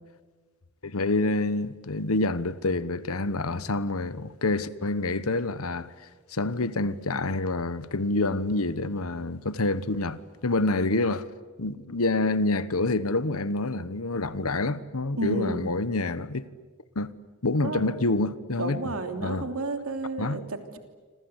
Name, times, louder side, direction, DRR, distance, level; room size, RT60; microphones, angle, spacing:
voice 1, 0.8-5.9 6.3-11.3 11.6-16.5 16.9-17.1 17.4-18.8 19.2-19.5 20.2-20.4, left 2 dB, 85° left, 1.2 m, -27 dB
voice 2, 15.2-15.7 17.6-17.9 18.6-20.8, right 2 dB, 80° right, 3.1 m, -31 dB
27.0 x 26.5 x 8.1 m
head